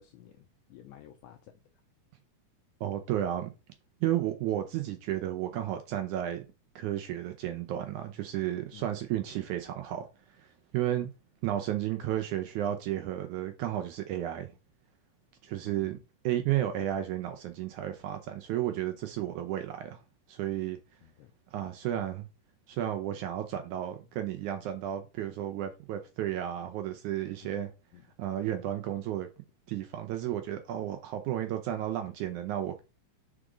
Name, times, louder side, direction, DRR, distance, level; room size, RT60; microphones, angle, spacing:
voice 1, 0.0-1.5 8.7-8.9 15.7-16.0 21.0-21.3 27.9-28.0, left 11 dB, 80° left, 1.7 m, -53 dB
voice 2, 2.8-3.5 4.0-6.5 6.8-10.1 10.4-10.5 10.7-11.1 11.4-14.5 15.4-16.0 16.2-20.0 20.3-20.8 21.5-22.3 22.7-27.7 28.2-29.3 29.7-32.8, right 12 dB, 75° right, 1.9 m, -32 dB
5.0 x 4.5 x 5.0 m
omnidirectional pair, 4.0 m